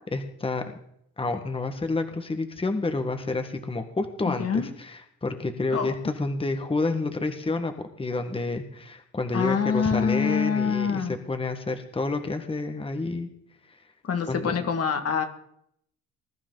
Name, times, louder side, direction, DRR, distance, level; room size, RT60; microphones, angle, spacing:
voice 1, 0.1-0.6 1.2-13.3 13.7-13.8 14.3-14.6, left 3 dB, 20° left, 6 dB, 1.5 m, -29 dB
voice 2, 4.3-4.7 5.7-5.9 9.3-11.2 14.0-15.2, left 6 dB, 55° left, 6 dB, 1.9 m, -25 dB
20.5 x 11.5 x 3.9 m, 0.72 s
cardioid pair, 90°, 30 cm